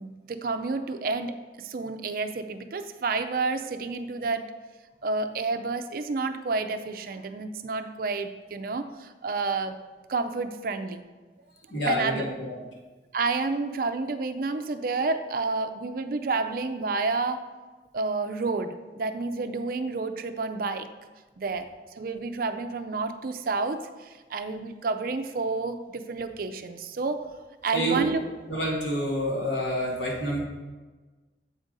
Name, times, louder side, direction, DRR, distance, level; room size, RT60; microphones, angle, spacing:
voice 1, 0.0-4.4 5.0-9.8 10.1-11.0 11.9-12.3 13.1-17.4 17.9-20.9 21.4-21.7 21.9-27.2 27.6-28.2, right 3 dB, 50° right, 8 dB, 0.4 m, -30 dB
voice 2, 11.7-12.5 27.7-28.1 28.5-30.4, equal, 80° left, -3 dB, 2.0 m, -28 dB
8.0 x 5.0 x 3.9 m, 1.3 s
head